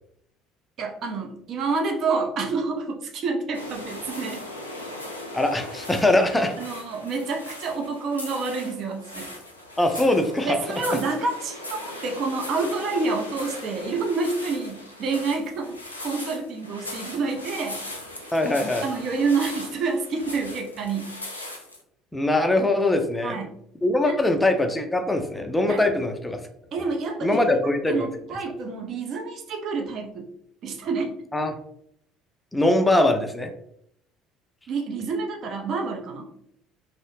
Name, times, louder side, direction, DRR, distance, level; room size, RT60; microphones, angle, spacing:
voice 1, 0.8-4.4 6.1-6.2 6.6-9.3 10.4-15.8 16.0-17.8 18.8-21.2 23.2-23.5 24.1-24.2 25.7-25.8 26.7-27.4 27.9-30.3 30.6-31.1 34.7-36.3, right 4 dB, 50° right, 3 dB, 0.5 m, -28 dB
sound 1, 3.5-21.8, left 1 dB, 90° left, 0.3 m, -38 dB
voice 2, 5.3-6.5 9.8-10.8 18.3-18.9 22.1-23.4 23.8-26.4 27.2-28.1 31.3-31.6 32.5-33.5, left 2 dB, 10° left, 5 dB, 0.4 m, -22 dB
2.7 x 2.0 x 2.9 m, 0.72 s
figure-of-eight pair, 60°, 0 cm